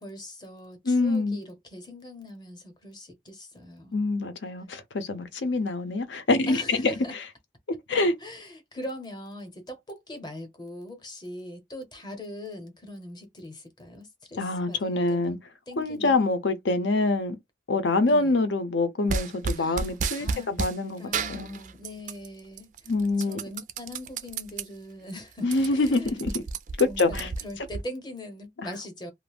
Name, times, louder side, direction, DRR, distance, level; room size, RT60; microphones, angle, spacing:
voice 1, 0.0-3.9 6.5-7.1 8.2-15.4 15.7-16.2 18.0-18.4 19.6-22.9 23.2-26.3 26.8-29.1, left 1 dB, 25° left, 0.7 m, -41 dB
voice 2, 0.9-1.4 3.9-6.9 7.9-8.1 14.4-15.4 15.8-17.4 17.7-21.6 22.9-23.4 25.4-26.4 26.8-27.3, left 3 dB, 80° left, 0.6 m, -25 dB
sound 1, 19.1-20.8 21.1-22.3 22.6-24.7 25.1-25.2 25.4-27.8, right 5 dB, 40° right, 0.3 m, -32 dB
2.4 x 2.0 x 3.4 m
head